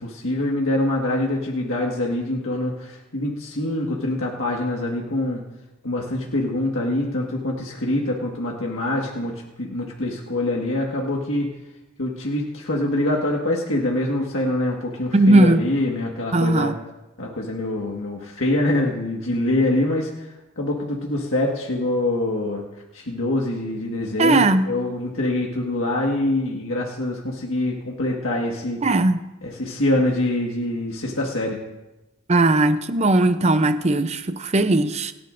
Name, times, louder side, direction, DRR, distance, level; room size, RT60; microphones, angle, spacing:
voice 1, 0.0-5.4 5.8-11.5 12.0-16.7 17.2-22.6 22.9-28.8 29.4-31.6, left 1 dB, 70° left, 1.7 m, -25 dB
voice 2, 15.1-15.6 16.3-16.8 24.2-24.7 28.8-29.2 32.3-35.1, right 2 dB, 30° right, 0.6 m, -18 dB
28.5 x 9.5 x 2.6 m
head